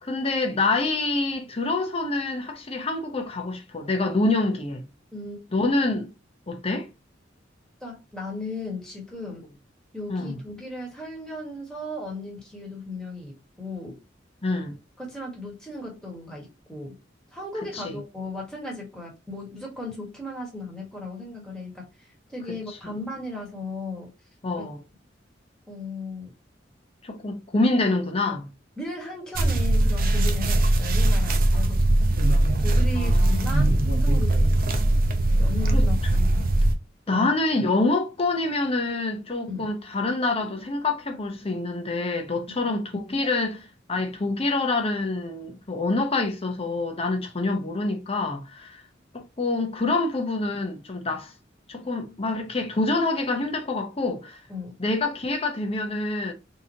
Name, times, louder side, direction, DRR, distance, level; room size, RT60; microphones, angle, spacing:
voice 1, 0.0-4.8 5.5-6.1 6.5-6.9 10.1-10.4 14.4-14.8 17.7-18.0 22.8-23.0 24.4-24.8 27.0-28.5 31.5-31.7 32.9-33.5 35.7-35.8 37.1-48.8 49.1-51.3 51.7-54.4 54.8-56.3, left 2 dB, 30° left, 0.7 m, -26 dB
voice 2, 5.1-5.4 7.8-9.5 9.9-14.0 15.0-17.0 17.3-24.1 25.7-26.3 28.3-28.4 28.8-31.8 32.3-33.7 34.0-34.7 35.4-36.5 37.1-37.3 39.5-39.7 42.5-42.7 54.5-54.7, left 2 dB, 5° left, 1.5 m, -36 dB
sound 1, 29.4-36.7, right 1 dB, 50° right, 0.6 m, -21 dB
3.7 x 2.9 x 2.8 m
head